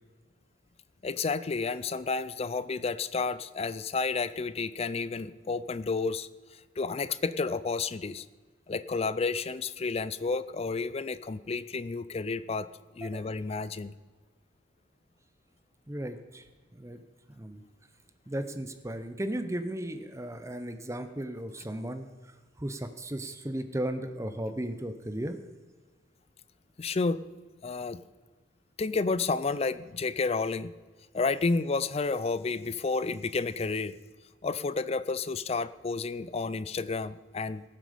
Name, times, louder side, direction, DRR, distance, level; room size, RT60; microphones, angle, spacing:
voice 1, 1.0-6.3 6.8-8.3 8.7-12.7 13.0-13.9 26.8-27.2 27.6-28.0 28.8-30.7 31.1-33.9 34.4-37.6, left 4 dB, 30° left, 15 dB, 0.4 m, -31 dB
voice 2, 15.9-16.4 16.7-17.0 17.4-17.6 18.3-22.1 22.6-25.4, right 1 dB, 15° right, 9 dB, 0.7 m, -35 dB
17.5 x 7.6 x 5.1 m, 1.3 s
head